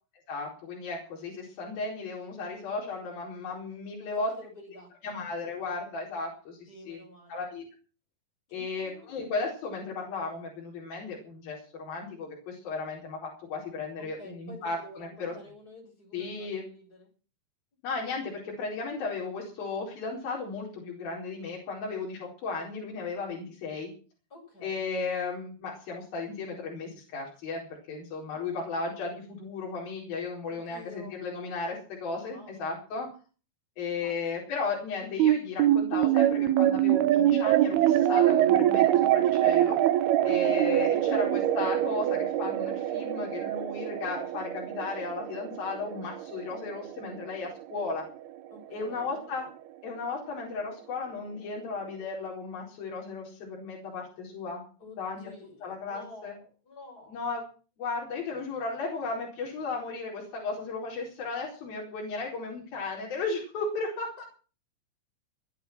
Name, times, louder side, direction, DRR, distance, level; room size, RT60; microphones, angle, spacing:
voice 1, 0.3-4.3 5.0-6.6 6.9-7.0 7.3-7.6 8.5-15.3 16.1-16.6 17.8-23.9 24.6-33.1 33.8-39.8 40.2-48.0 48.7-49.5 49.8-54.6 55.0-55.2 55.6-56.3 57.1-57.4 57.8-64.2, left 4 dB, 70° left, -2 dB, 6.3 m, -35 dB
voice 2, 4.0-5.2 6.7-7.4 8.5-9.1 14.0-17.1 24.3-24.8 30.5-31.2 32.2-32.8 34.0-34.4 40.5-41.0 48.5-49.2 54.8-57.2, left 1 dB, 25° left, 1 dB, 7.6 m, -50 dB
sound 1, 35.2-47.8, right 12 dB, 90° right, 3.1 m, -24 dB
20.5 x 9.6 x 6.2 m, 0.38 s
omnidirectional pair, 4.4 m